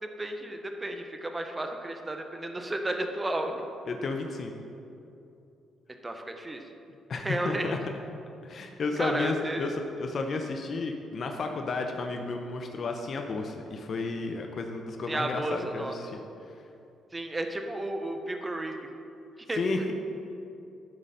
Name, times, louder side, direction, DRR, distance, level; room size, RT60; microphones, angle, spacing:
voice 1, 0.0-3.6 6.0-6.6 7.1-7.7 9.0-9.7 15.1-16.0 17.1-18.7 19.5-19.9, right 1 dB, 20° right, 5 dB, 0.8 m, -33 dB
voice 2, 3.9-4.5 7.1-7.8 8.4-16.2 19.5-19.9, left 3 dB, 50° left, 3 dB, 0.6 m, -32 dB
10.5 x 4.0 x 5.6 m, 2.7 s
cardioid pair, 90°, 0 cm